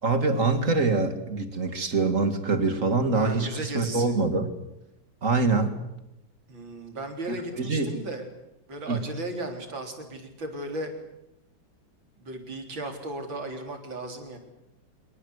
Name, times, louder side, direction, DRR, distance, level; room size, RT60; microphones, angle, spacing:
voice 1, 0.0-4.5 5.2-5.7 7.5-7.9 8.9-9.0, right 3 dB, 40° right, 9 dB, 2.5 m, -24 dB
voice 2, 3.1-4.1 6.5-8.3 8.7-10.9 12.2-14.4, right 2 dB, 75° right, 5 dB, 4.6 m, -35 dB
25.5 x 23.0 x 8.1 m, 0.87 s
omnidirectional pair, 2.1 m